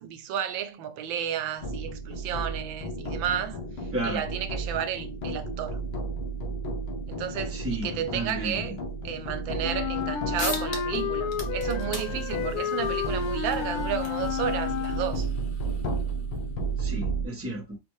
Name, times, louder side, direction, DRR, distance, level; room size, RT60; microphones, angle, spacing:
voice 1, 0.0-5.8 7.1-8.8 9.0-15.3, right 9 dB, 90° right, 1.4 m, -32 dB
sound 1, 1.6-17.3, right 3 dB, 90° left, 1.8 m, -33 dB
voice 2, 3.9-4.2 7.5-8.6 16.8-17.8, right 1 dB, 10° right, 1.0 m, -32 dB
Wind instrument woodwind instrument, 9.6-15.4, left 8 dB, 75° left, 0.9 m, -31 dB
sound 2, 10.0-10.1 10.4-11.0 11.3-16.4, left 3 dB, 45° left, 0.6 m, -40 dB
5.1 x 2.6 x 3.1 m
omnidirectional pair, 2.1 m